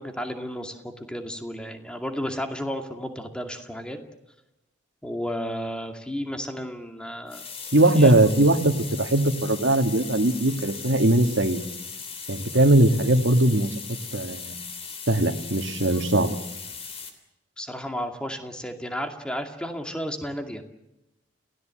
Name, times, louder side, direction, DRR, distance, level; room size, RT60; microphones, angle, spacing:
voice 1, 0.0-4.0 5.0-7.4 8.0-8.1 17.6-20.6, equal, 5° left, 5 dB, 2.3 m, -33 dB
sound 1, 7.3-17.1, left 5 dB, 35° left, 3.2 m, -38 dB
voice 2, 7.7-11.6 12.3-13.8 14.1-14.5 15.1-16.4, right 1 dB, 80° right, 6 dB, 2.0 m, -20 dB
29.5 x 17.0 x 7.8 m, 0.92 s
head